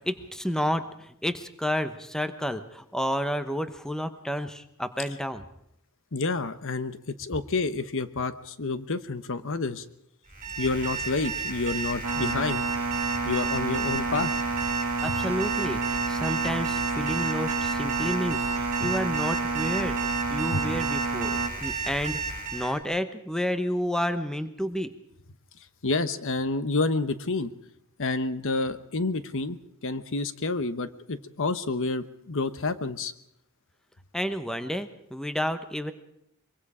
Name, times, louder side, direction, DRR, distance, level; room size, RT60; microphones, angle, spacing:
voice 1, 0.0-5.4 15.0-22.3 22.5-24.9 34.1-35.9, equal, 5° left, 10 dB, 0.9 m, -30 dB
voice 2, 6.1-9.8 10.6-12.7 13.2-14.3 15.1-15.2 18.8-18.9 20.5-20.6 25.8-27.5 28.0-33.1, left 3 dB, 65° left, 12 dB, 1.0 m, -29 dB
Alarm, 10.3-22.8, right 4 dB, 40° right, 5.0 m, -33 dB
sound 1, 12.0-21.5, right 4 dB, 85° right, 1.5 m, -30 dB
23.0 x 23.0 x 5.0 m, 0.76 s
head